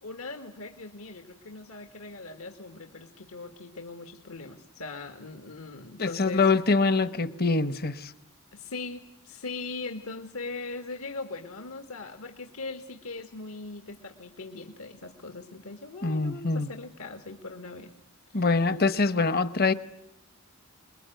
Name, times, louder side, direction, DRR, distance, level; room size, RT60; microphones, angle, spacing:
voice 1, 0.0-6.5 8.5-17.9 18.3-18.7, left 3 dB, 75° left, 6 dB, 2.0 m, -40 dB
voice 2, 6.0-8.1 16.0-16.7 18.3-19.7, left 3 dB, 45° left, 14 dB, 1.1 m, -24 dB
27.5 x 21.5 x 9.3 m, 0.88 s
head